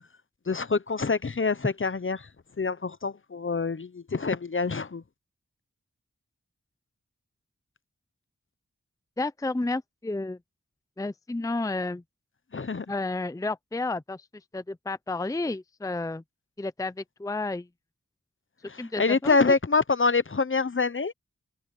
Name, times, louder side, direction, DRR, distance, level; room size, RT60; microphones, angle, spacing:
voice 1, 0.5-2.2 2.6-5.0 12.5-12.8 18.7-21.1, left 4 dB, 40° left, 0.9 m, -26 dB
voice 2, 9.2-10.4 11.0-12.0 12.9-14.3 14.5-16.2 16.6-17.7 18.8-19.5, left 2 dB, 10° left, 0.6 m, -31 dB
wide cardioid pair, 45°, 30 cm